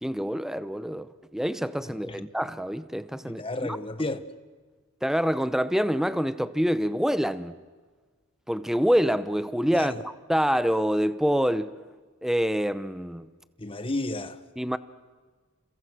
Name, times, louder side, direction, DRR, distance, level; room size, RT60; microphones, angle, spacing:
voice 1, 0.0-3.8 5.0-7.6 8.5-11.8 12.2-13.3 14.6-14.8, equal, ahead, 0.7 m, -26 dB
voice 2, 3.2-4.3 9.7-10.0 13.6-14.4, left 2 dB, 25° left, 1.2 m, -32 dB
29.5 x 29.5 x 6.3 m
head